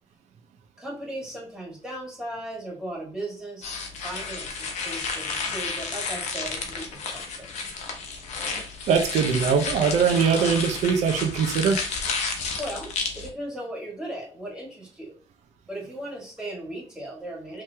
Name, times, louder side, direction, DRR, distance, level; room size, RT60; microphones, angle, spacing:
voice 1, 0.8-3.7 4.0-7.5 12.6-15.1 15.7-17.6, right 1 dB, 5° right, -3 dB, 2.1 m, -37 dB
sound 1, 3.6-13.3, left 4 dB, 80° left, 0.9 m, -32 dB
voice 2, 8.9-11.8, right 6 dB, 90° right, 5 dB, 0.7 m, -22 dB
5.0 x 3.2 x 2.8 m, 0.40 s
cardioid pair, 105°, 12 cm